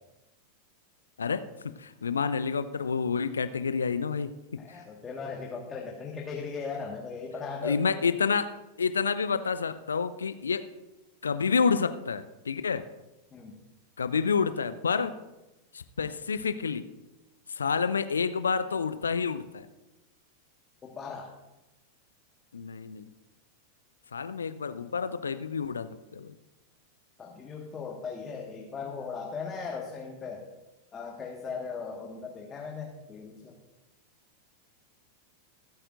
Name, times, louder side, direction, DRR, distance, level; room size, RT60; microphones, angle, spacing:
voice 1, 1.2-4.3 7.6-10.7 11.2-12.9 14.0-15.2 15.7-16.9 17.5-19.7 22.5-23.1 24.1-26.3, left 5 dB, 70° left, 12 dB, 0.5 m, -29 dB
voice 2, 4.6-8.1 13.3-13.5 20.8-21.3 27.2-30.4 30.9-33.5, left 5 dB, 20° left, -1 dB, 1.6 m, -38 dB
24.0 x 8.7 x 2.5 m, 1.0 s
figure-of-eight pair, 90°, 0 cm